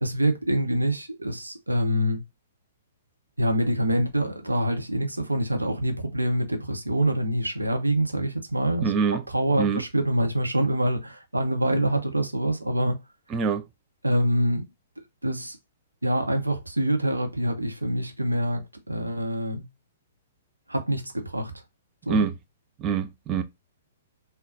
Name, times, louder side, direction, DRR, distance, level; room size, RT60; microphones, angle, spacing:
voice 1, 0.0-2.2 3.4-8.9 9.3-13.0 14.0-14.7 15.2-15.6 16.0-19.6 20.7-21.5 22.1-22.3, right 1 dB, 80° right, 0.8 m, -25 dB
voice 2, 8.8-9.2 9.6-9.8 13.3-13.6 22.1-22.3 22.8-23.4, right 6 dB, 25° right, 0.3 m, -24 dB
3.9 x 2.2 x 3.8 m
figure-of-eight pair, 115°, 0 cm